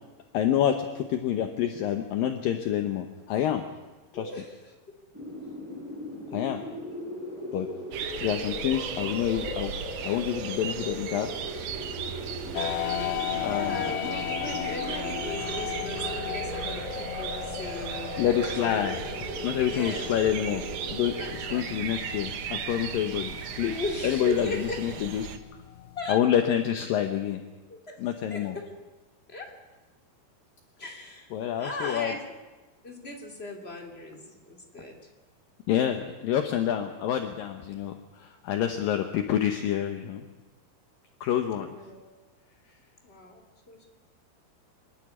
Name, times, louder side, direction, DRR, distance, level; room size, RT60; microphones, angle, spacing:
voice 1, 0.3-3.7 4.1-4.3 6.3-6.6 7.5-7.7 8.2-9.7 10.0-11.3 13.4-13.9 18.2-19.0 19.4-21.2 21.5-25.3 26.1-27.4 28.0-28.6 31.3-32.1 35.7-40.2 41.2-41.7, left 10 dB, 70° left, 6 dB, 2.4 m, -27 dB
voice 2, 4.1-4.7 6.2-6.6 13.3-18.9 19.3-20.1 21.2-21.9 23.7-25.0 25.9-26.2 27.7-28.0 28.3-28.7 29.3-29.5 30.8-32.2 32.8-35.0 41.5-42.1 43.0-43.8, left 2 dB, 15° left, 1 dB, 2.6 m, -38 dB
sound 1, 5.1-21.3, equal, 5° right, 5.3 m, -38 dB
sound 2, 7.9-25.4, right 8 dB, 85° right, 1.5 m, -37 dB
sound 3, 12.6-26.2, left 13 dB, 85° left, 3.1 m, -37 dB
24.5 x 12.0 x 9.9 m, 1.2 s
omnidirectional pair, 4.8 m